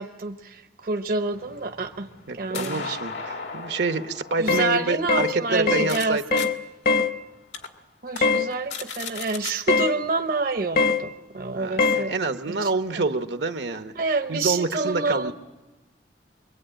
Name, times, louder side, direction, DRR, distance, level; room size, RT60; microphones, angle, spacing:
voice 1, 0.0-2.1 2.3-3.0 4.4-6.4 8.0-12.1 12.5-13.1 13.9-15.3, right 3 dB, 55° right, 6 dB, 0.9 m, -28 dB
sound 1, 1.3-6.1 6.4-6.5 7.0-7.1 7.5-7.7 8.1-8.2 8.5-9.5, left 5 dB, 80° left, 2.0 m, -37 dB
voice 2, 2.3-6.2 11.5-13.9 14.3-15.3, right 3 dB, 75° right, 8 dB, 1.1 m, -27 dB
sound 2, 4.5-4.7 5.1-5.3 5.7-5.9 6.3-6.6 6.8-7.1 8.2-8.5 9.7-9.9 10.8-11.0 11.8-12.0, left 4 dB, 55° left, 1.2 m, -21 dB
24.5 x 23.0 x 8.9 m, 1.1 s
head